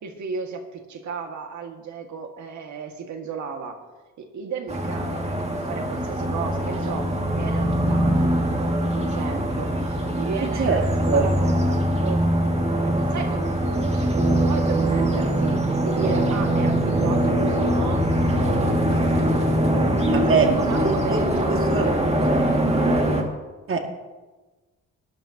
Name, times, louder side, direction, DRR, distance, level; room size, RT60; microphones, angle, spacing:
voice 1, 0.0-3.8 4.2-8.3 8.6-10.8 11.1-12.2 12.8-18.6 19.6-23.1, right 5 dB, 70° right, 4 dB, 1.9 m, -34 dB
sound 1, 4.7-23.2, right 1 dB, 20° right, 2.1 m, -22 dB
voice 2, 10.4-10.8 11.1-11.3 20.1-20.5 20.8-21.2 21.5-21.9 23.7-23.8, right 5 dB, 45° right, 3 dB, 2.1 m, -23 dB
19.0 x 11.0 x 2.9 m, 1.2 s
cardioid pair, 90°, 30 cm